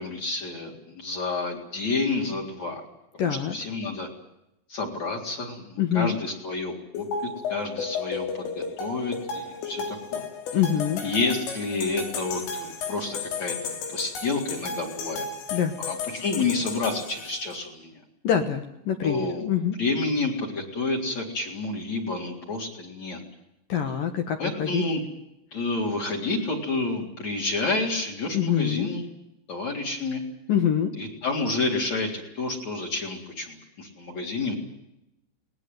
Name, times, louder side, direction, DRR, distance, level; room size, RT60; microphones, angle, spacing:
voice 1, 0.0-2.8 3.1-4.1 4.7-10.3 11.0-15.3 15.5-18.0 19.0-19.5 19.8-23.2 24.4-25.0 25.5-29.0 29.5-30.2 31.0-34.5, left 3 dB, 35° left, 5 dB, 4.5 m, -29 dB
voice 2, 3.2-3.6 5.8-6.2 10.5-11.0 15.5-15.7 18.2-19.8 23.7-24.8 28.3-28.9 30.5-30.9, left 8 dB, 60° left, 6 dB, 2.5 m, -25 dB
sound 1, 7.0-17.6, left 5 dB, 90° left, 5.7 m, -34 dB
21.0 x 20.0 x 9.3 m, 0.83 s
omnidirectional pair, 5.5 m